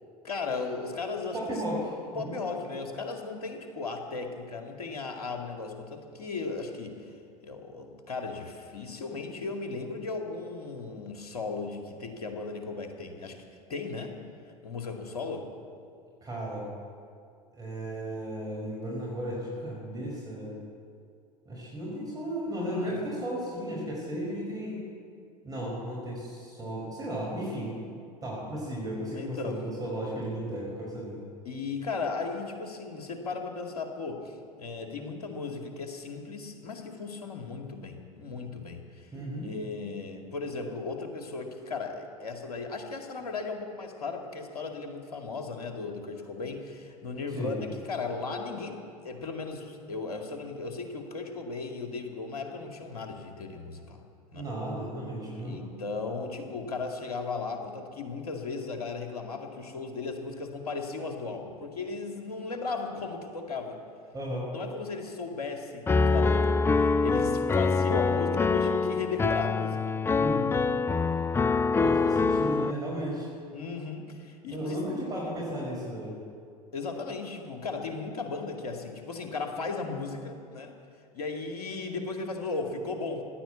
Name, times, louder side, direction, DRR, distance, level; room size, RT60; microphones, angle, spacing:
voice 1, 0.2-1.4 2.2-7.0 7.4-13.4 13.7-14.1 14.6-15.5 22.7-22.9 29.1-29.6 31.5-39.1 39.4-48.8 49.0-54.0 54.3-54.5 55.4-63.8 64.5-70.0 71.8-72.1 73.5-74.8 76.7-80.8 81.1-83.2, left 4 dB, 70° left, 3 dB, 2.2 m, -36 dB
voice 2, 1.3-2.4 16.2-16.7 17.5-20.6 21.5-24.8 25.4-27.7 28.2-31.2 39.1-39.5 47.3-47.6 54.3-55.6 64.1-64.5 70.2-70.5 71.8-73.3 74.5-76.1, equal, 20° right, -4 dB, 5.4 m, -34 dB
Piano, 65.9-72.7, left 4 dB, 10° left, 0.4 m, -25 dB
16.0 x 11.0 x 8.3 m, 2.3 s
figure-of-eight pair, 75°, 20 cm